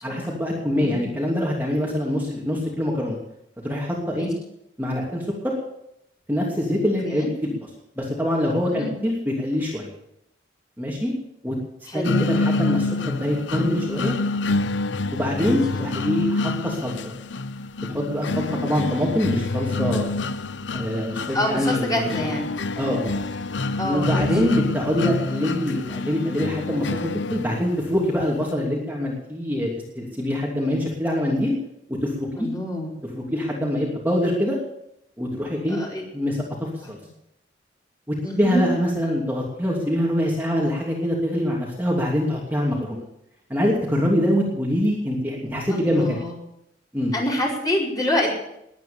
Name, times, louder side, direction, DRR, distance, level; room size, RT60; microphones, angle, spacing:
voice 1, 0.0-3.2 3.6-4.3 4.8-5.5 6.3-7.6 8.0-9.9 10.8-11.1 11.4-11.5 11.9-14.2 15.1-17.0 17.9-20.1 20.7-22.3 22.8-23.1 23.8-29.7 29.9-31.5 31.9-32.5 33.1-34.6 35.2-35.8 36.1-37.0 38.1-43.0 43.5-46.2 46.9-47.1, equal, 10° right, -3 dB, 2.9 m, -24 dB
voice 2, 0.8-1.1 4.1-4.3 7.0-7.3 8.6-8.9 11.9-12.1 15.4-15.9 21.3-22.5 23.8-24.3 32.3-33.0 33.6-33.9 35.7-36.0 38.2-38.7 45.7-46.4 47.1-48.3, left 1 dB, 20° left, -3 dB, 5.1 m, -27 dB
sound 1, 12.0-28.0, left 3 dB, 85° left, 0.7 m, -27 dB
20.5 x 9.4 x 7.1 m, 0.80 s
head